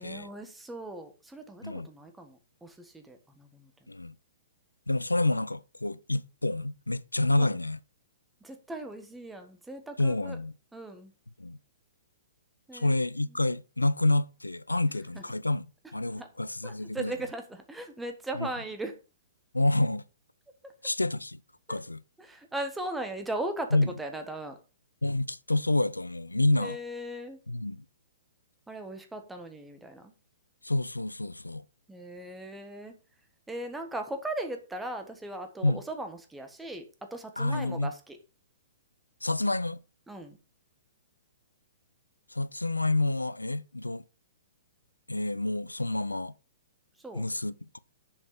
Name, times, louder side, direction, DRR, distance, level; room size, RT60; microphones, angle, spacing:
voice 1, 0.0-3.9 7.3-7.5 8.4-10.4 10.7-11.1 12.7-12.9 15.1-15.2 16.2-16.3 16.6-18.9 20.6-20.7 21.7-21.8 22.2-24.6 26.6-27.4 28.7-30.1 31.9-32.9 33.5-38.2 40.1-40.4 47.0-47.2, right 1 dB, 5° right, 1.5 m, -38 dB
voice 2, 4.9-7.8 10.0-10.5 11.4-11.6 12.7-17.1 18.4-18.5 19.5-20.0 20.8-21.4 21.7-22.0 23.7-23.9 25.0-26.8 27.5-27.8 30.6-31.6 35.6-35.8 37.4-37.9 39.2-39.8 42.3-44.0 45.1-46.3 47.1-47.8, left 2 dB, 85° left, 0.4 m, -28 dB
7.1 x 5.2 x 6.9 m
figure-of-eight pair, 115°, 0 cm